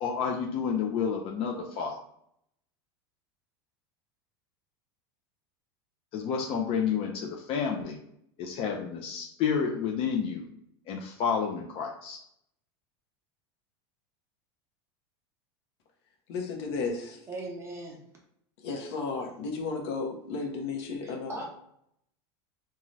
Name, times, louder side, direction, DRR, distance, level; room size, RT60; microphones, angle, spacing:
voice 1, 0.0-1.9 6.1-8.0 8.4-10.5 10.9-12.2, left 6 dB, 45° left, 1 dB, 0.5 m, -30 dB
voice 2, 16.3-17.2 18.6-21.3, left 4 dB, 75° left, 2 dB, 0.7 m, -33 dB
voice 3, 17.3-18.1 21.0-21.4, right 2 dB, 20° right, -1 dB, 0.7 m, -39 dB
2.6 x 2.3 x 3.1 m, 0.73 s
supercardioid pair, 125°, 14 cm